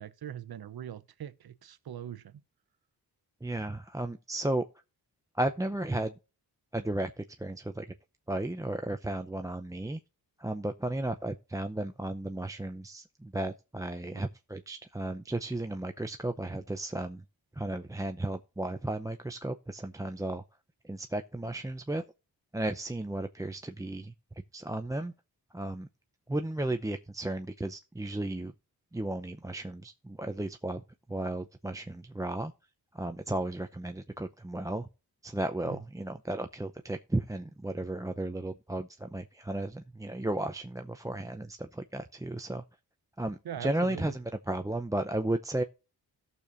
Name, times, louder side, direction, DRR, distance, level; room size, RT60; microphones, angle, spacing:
voice 1, 0.0-2.2 14.1-14.2 35.7-35.8 43.4-44.0, right 10 dB, 70° right, 0.9 m, -41 dB
voice 2, 3.4-4.6 5.3-6.1 6.7-7.9 8.3-10.0 10.4-17.2 17.6-20.4 20.8-22.0 22.5-24.1 24.5-25.1 25.5-25.9 26.3-28.5 28.9-30.8 31.1-32.5 32.9-34.9 35.2-42.6 43.2-45.6, right 1 dB, 10° right, 0.6 m, -34 dB
17.0 x 6.9 x 2.6 m
cardioid pair, 65°, 39 cm